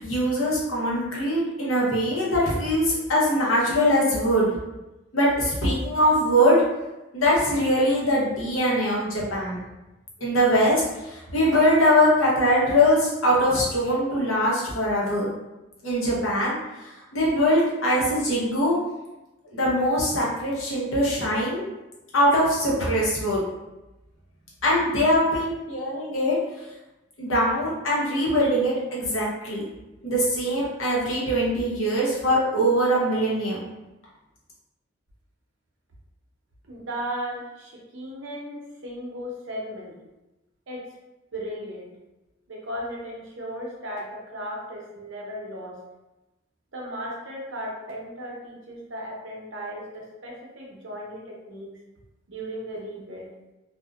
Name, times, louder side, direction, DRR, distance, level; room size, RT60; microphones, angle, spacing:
voice 1, 0.0-4.6 5.1-6.6 7.1-9.6 10.2-15.3 15.8-18.8 19.5-21.7 22.1-23.4 24.6-26.4 27.2-29.7 30.0-33.6, equal, 85° left, -5 dB, 0.8 m, -22 dB
voice 2, 36.6-40.0 40.7-40.8 41.3-41.9 42.5-45.8 46.7-51.7 52.3-53.3, equal, 70° right, -3 dB, 0.7 m, -36 dB
2.6 x 2.1 x 2.3 m, 1.0 s
head